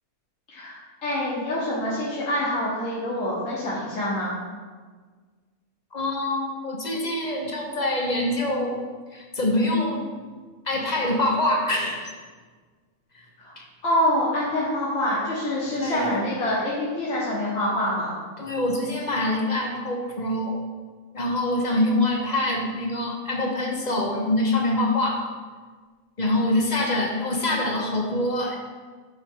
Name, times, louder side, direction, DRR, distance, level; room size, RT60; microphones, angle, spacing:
voice 1, 0.5-4.4 13.4-13.5 13.8-18.1, left 1 dB, 55° left, -9 dB, 1.9 m, -26 dB
voice 2, 5.9-8.8 9.1-10.1 10.7-12.1 13.1-13.2 13.6-13.7 15.8-16.3 18.4-20.6 21.1-25.2 26.2-28.6, left 1 dB, 35° left, 1 dB, 0.8 m, -25 dB
7.8 x 4.5 x 4.6 m, 1.5 s
omnidirectional pair, 1.6 m